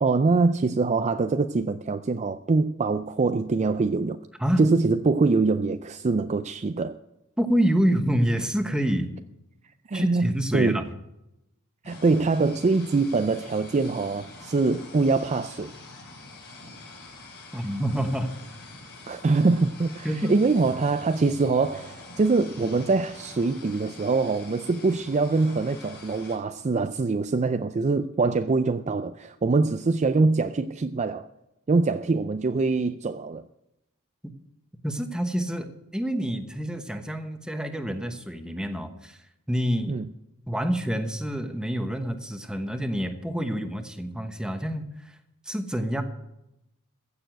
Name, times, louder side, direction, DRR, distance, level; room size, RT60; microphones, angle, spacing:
voice 1, 0.0-4.2 4.6-6.9 9.9-10.8 11.9-15.7 19.1-31.3 31.7-33.4 39.9-40.1, right 3 dB, 30° right, 0.4 m, -24 dB
voice 2, 7.4-9.2 9.9-10.9 17.5-18.3 20.0-20.3 34.8-39.2 39.5-40.0 40.5-45.2 45.4-46.0, equal, 5° right, 1.1 m, -27 dB
sound 1, 11.8-26.3, left 2 dB, 50° left, 4.7 m, -45 dB
15.5 x 7.0 x 8.0 m
head